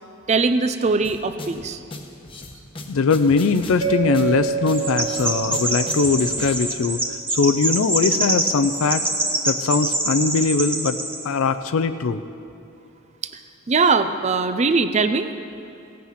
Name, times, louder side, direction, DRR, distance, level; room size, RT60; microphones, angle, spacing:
voice 1, 0.3-1.8 13.2-13.3 13.7-15.3, right 4 dB, 35° right, 10 dB, 0.5 m, -20 dB
sound 1, 1.0-6.5, left 1 dB, 25° left, 1.0 m, -38 dB
voice 2, 2.9-7.0 7.3-9.1 9.4-11.0 11.2-12.2, left 4 dB, 85° left, 9 dB, 0.5 m, -21 dB
Mallet percussion, 3.8-6.8, right 6 dB, 70° right, 1.1 m, -28 dB
Chirp tweet, 4.7-11.2, right 1 dB, 10° right, 1.0 m, -25 dB
17.0 x 8.4 x 5.8 m, 2.7 s
head